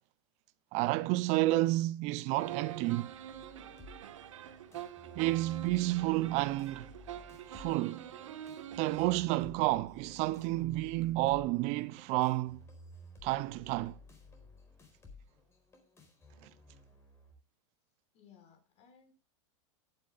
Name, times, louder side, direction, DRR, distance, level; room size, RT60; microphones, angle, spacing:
voice 1, 0.7-3.1 5.2-6.9 7.5-8.1 8.8-12.6 13.2-14.0 16.4-16.5, right 18 dB, 45° right, 0.6 m, -30 dB
sound 1, 2.4-9.2, right 10 dB, 90° right, 1.5 m, -45 dB
sound 2, 3.3-17.3, left 2 dB, 15° left, 4.3 m, -56 dB
voice 2, 18.1-19.1, left 7 dB, 40° left, 6.0 m, -60 dB
15.5 x 12.0 x 2.5 m
supercardioid pair, 135°, 16 cm